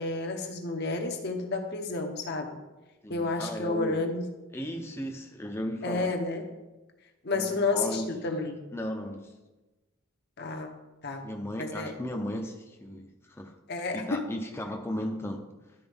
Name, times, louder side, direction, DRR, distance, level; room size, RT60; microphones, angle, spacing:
voice 1, 0.0-2.6 3.1-4.3 5.8-6.5 7.2-8.6 10.4-10.7 11.0-11.3 11.6-11.9 13.7-14.2, left 3 dB, 50° left, 0.9 m, -31 dB
voice 2, 3.0-4.0 4.5-6.1 7.3-8.1 8.7-9.3 11.2-13.6 13.9-15.4, left 1 dB, 10° left, 0.6 m, -35 dB
12.0 x 4.5 x 3.5 m
head